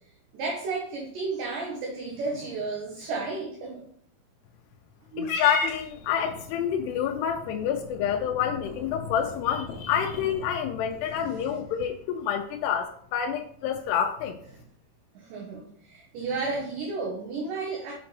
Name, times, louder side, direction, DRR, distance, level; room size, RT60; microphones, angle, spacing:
voice 1, 0.3-3.9 5.1-5.3 11.1-11.7 15.1-17.9, right 3 dB, 70° right, -1 dB, 2.3 m, -33 dB
Purr / Meow, 5.2-11.7, left 3 dB, 75° left, 2.7 m, -38 dB
voice 2, 5.4-14.4, left 8 dB, 90° left, 3 dB, 2.7 m, -28 dB
6.8 x 5.1 x 3.2 m, 0.63 s
omnidirectional pair, 4.6 m